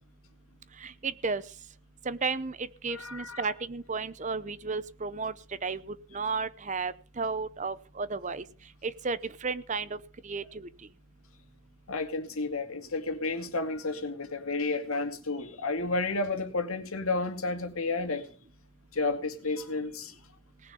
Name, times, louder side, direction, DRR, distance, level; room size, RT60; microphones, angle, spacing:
voice 1, 0.8-1.4 2.0-5.3 5.6-8.4 8.8-10.0 10.2-10.7, right 4 dB, 35° right, 16 dB, 0.7 m, -33 dB
voice 2, 2.9-3.5 11.9-18.3 18.9-20.1, left 3 dB, 85° left, 7 dB, 2.3 m, -31 dB
18.5 x 6.9 x 7.0 m, 0.40 s
head